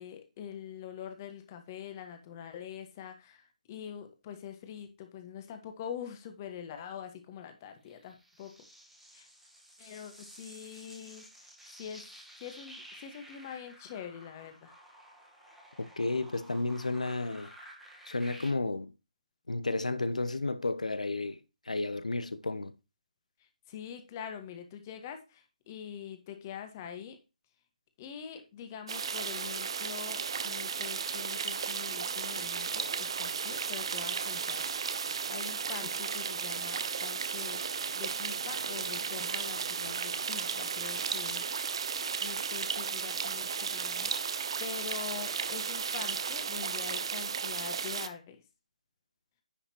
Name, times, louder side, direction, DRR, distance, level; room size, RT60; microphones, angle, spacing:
voice 1, 0.0-8.5 9.1-9.3 9.8-11.3 11.8-12.0 12.4-14.7 23.7-27.2 28.0-37.6 37.9-41.4 42.2-48.4, left 8 dB, 25° left, 1.5 m, -44 dB
sound 1, 7.9-18.5, equal, 5° right, 1.7 m, -53 dB
voice 2, 15.8-17.5 18.1-18.9 19.5-21.4 21.7-22.7, left 2 dB, 70° left, 0.9 m, -32 dB
sound 2, 28.9-48.1, right 6 dB, 45° right, 0.8 m, -34 dB
10.0 x 7.4 x 3.0 m
figure-of-eight pair, 145°, 4 cm